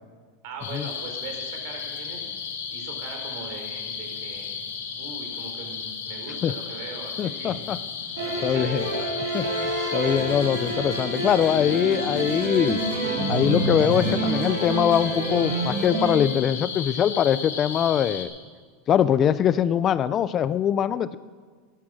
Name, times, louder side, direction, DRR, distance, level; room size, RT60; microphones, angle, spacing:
voice 1, 0.4-4.6 4.9-9.3, right 3 dB, 65° right, 3 dB, 4.2 m, -41 dB
sound 1, 0.6-18.2, left 6 dB, 90° left, 2.2 m, -34 dB
voice 2, 7.2-7.8 8.4-8.9 9.3-12.8 13.3-18.3 18.9-21.2, left 9 dB, 35° left, 16 dB, 0.5 m, -23 dB
sound 2, 8.2-16.2, right 2 dB, 85° right, 4.8 m, -28 dB
13.5 x 11.0 x 6.3 m, 1.5 s
supercardioid pair, 125°, 0 cm